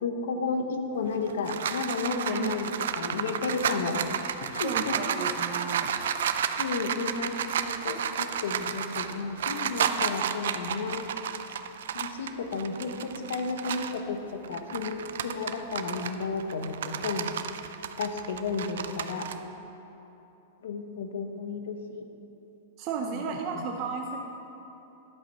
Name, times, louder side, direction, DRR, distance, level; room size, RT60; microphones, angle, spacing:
voice 1, 0.0-4.1 4.5-5.0 6.6-11.0 11.9-17.3 18.0-19.2 20.6-22.1 23.1-23.2 23.5-23.6, left 4 dB, 85° left, 5 dB, 1.2 m, -32 dB
sound 1, 1.1-14.0 14.4-19.3, right 8 dB, 80° right, 0.5 m, -32 dB
voice 2, 4.6-5.9 22.8-24.2, right 6 dB, 35° right, 1 dB, 0.7 m, -33 dB
11.0 x 8.1 x 5.7 m, 3.0 s
supercardioid pair, 155°, 0 cm